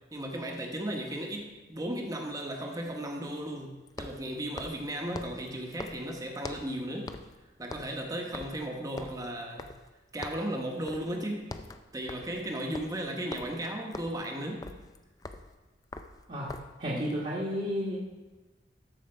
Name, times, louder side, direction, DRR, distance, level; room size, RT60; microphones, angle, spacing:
voice 1, 0.1-7.2 7.6-9.7 10.1-11.5 11.9-14.7, right 1 dB, 20° right, 2 dB, 1.1 m, -35 dB
sound 1, 0.6-0.7 3.9-6.8 7.1-7.4 7.6-10.0 10.2-10.5 10.9-11.1 11.4-16.8, left 2 dB, 20° left, 0.4 m, -44 dB
voice 2, 16.8-18.0, equal, 40° right, -6 dB, 1.3 m, -32 dB
13.0 x 4.8 x 4.4 m, 1.2 s
head